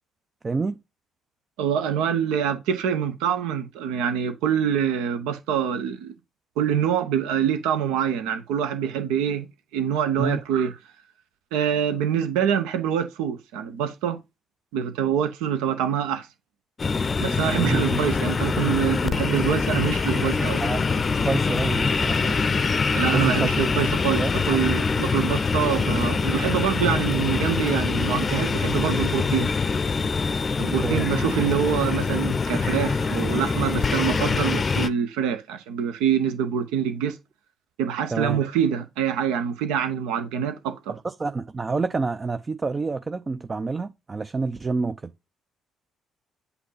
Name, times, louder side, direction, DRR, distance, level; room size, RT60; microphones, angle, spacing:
voice 1, 0.4-0.8 10.2-10.4 17.6-17.9 20.6-22.4 23.1-23.5 24.2-24.6 30.8-31.1 38.1-38.4 41.0-45.1, right 4 dB, 30° right, 0.4 m, -28 dB
voice 2, 1.6-6.1 6.6-9.5 9.7-10.7 11.5-14.2 14.7-16.3 17.2-20.6 22.9-29.6 30.6-37.2 37.8-41.0, right 8 dB, 70° right, 0.7 m, -25 dB
sound 1, 16.8-34.9, left 4 dB, 35° left, 0.6 m, -24 dB
8.0 x 2.7 x 5.6 m
hypercardioid pair, 45°, 0 cm